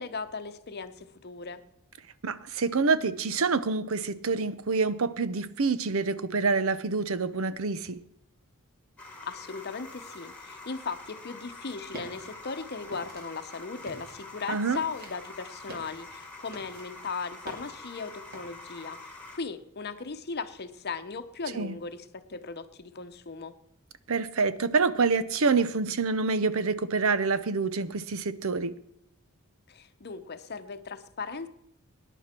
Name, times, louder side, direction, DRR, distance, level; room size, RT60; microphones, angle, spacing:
voice 1, 0.0-1.6 9.3-23.5 29.7-31.5, left 4 dB, 50° left, 10 dB, 0.9 m, -38 dB
voice 2, 2.2-8.0 14.5-14.8 21.5-21.7 24.1-28.7, right 4 dB, 70° right, 14 dB, 0.7 m, -27 dB
sound 1, 9.0-19.4, left 2 dB, 5° left, 2.1 m, -46 dB
sound 2, 11.9-18.5, right 1 dB, 45° right, 2.7 m, -48 dB
20.5 x 10.0 x 4.4 m, 0.78 s
head